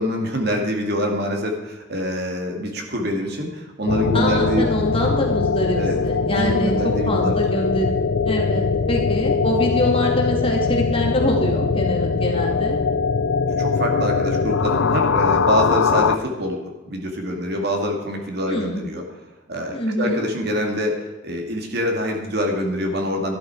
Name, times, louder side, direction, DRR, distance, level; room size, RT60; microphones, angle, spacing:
voice 1, 0.0-4.7 5.7-6.0 6.3-7.3 13.6-19.1 19.5-23.4, equal, 55° right, 2 dB, 2.1 m, -25 dB
sound 1, 3.9-16.2, left 5 dB, 70° left, 0.5 m, -21 dB
voice 2, 4.1-7.9 8.3-12.8 18.5-18.8 19.7-20.3, left 1 dB, 25° left, 0 dB, 2.4 m, -24 dB
13.0 x 12.0 x 4.7 m, 1.1 s
head